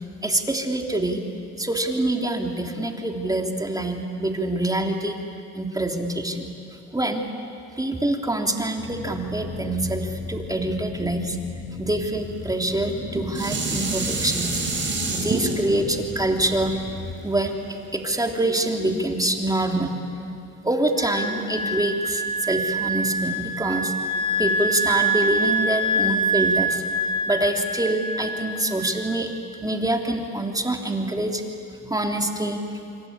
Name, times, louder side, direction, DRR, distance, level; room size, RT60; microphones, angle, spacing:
voice 1, 0.2-1.2 1.6-5.2 5.5-6.5 6.9-7.2 7.8-11.4 11.8-14.6 15.1-16.8 17.2-20.0 20.6-26.8 27.2-29.3 29.6-31.4 31.8-32.6, right 1 dB, 10° right, 2 dB, 3.1 m, -25 dB
sound 1, 8.8-17.2, left 4 dB, 50° left, 3.9 m, -37 dB
Dishes pots and pans, 12.7-18.0 18.6-18.7, right 3 dB, 40° right, 6.3 m, -28 dB
Wind instrument woodwind instrument, 21.0-29.3, right 1 dB, 70° left, 2.0 m, -25 dB
26.5 x 24.0 x 8.7 m, 2.6 s
cardioid pair, 90°, 30 cm